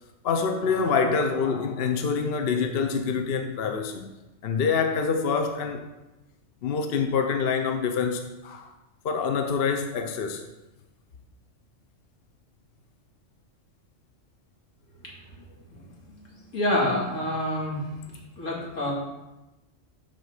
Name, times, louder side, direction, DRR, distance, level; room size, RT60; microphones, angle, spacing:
voice 1, 0.2-4.1 4.4-5.8 6.6-8.7 9.0-10.4, left 5 dB, 55° left, 0.8 m, -26 dB
voice 2, 16.1-17.8 18.4-18.9, left 1 dB, 80° left, 2.6 m, -27 dB
7.7 x 4.3 x 6.6 m
omnidirectional pair, 1.3 m